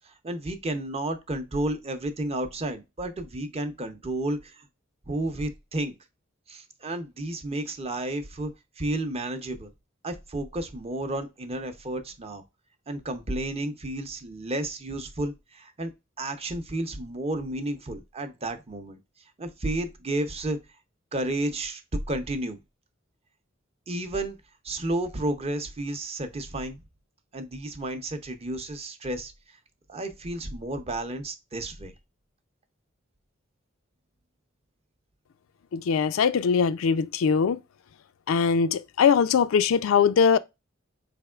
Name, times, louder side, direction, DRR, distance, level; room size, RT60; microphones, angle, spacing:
voice 1, 0.0-4.6 5.1-5.9 6.5-8.5 8.8-9.7 10.0-12.4 12.9-15.9 16.2-19.0 19.4-20.6 21.1-22.6 23.9-24.4 24.6-26.8 27.3-29.3 29.9-31.9, right 1 dB, 30° right, 0.6 m, -32 dB
voice 2, 35.7-37.6 38.3-40.4, left 6 dB, 85° left, 0.4 m, -21 dB
4.3 x 3.4 x 2.2 m
head